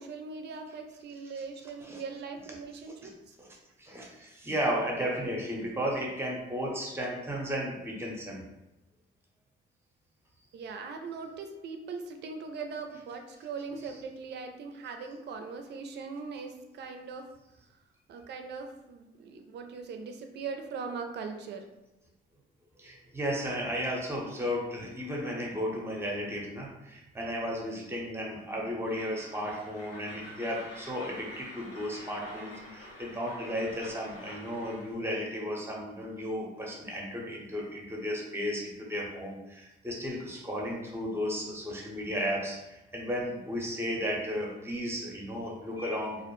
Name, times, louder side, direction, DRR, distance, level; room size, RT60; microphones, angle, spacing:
voice 1, 0.0-3.1 10.5-17.3 18.1-21.7, right 4 dB, 60° right, 5 dB, 0.4 m, -40 dB
voice 2, 3.4-8.4 13.9-14.0 22.8-46.2, equal, 10° right, -2 dB, 0.7 m, -34 dB
Train, 28.8-34.9, equal, 90° left, 1.1 m, -48 dB
2.5 x 2.0 x 3.0 m, 1.0 s
cardioid pair, 90°, 20 cm